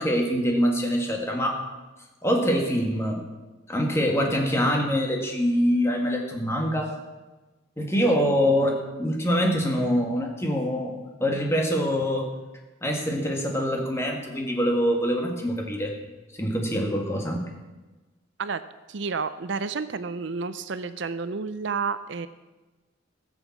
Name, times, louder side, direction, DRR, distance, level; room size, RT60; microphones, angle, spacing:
voice 1, 0.0-1.6 2.2-3.2 3.7-6.9 7.8-12.3 12.8-15.9 16.3-17.4, equal, 15° left, 1 dB, 1.8 m, -24 dB
voice 2, 18.9-22.3, right 5 dB, 60° right, 13 dB, 0.5 m, -30 dB
15.0 x 7.1 x 7.3 m, 1.2 s
head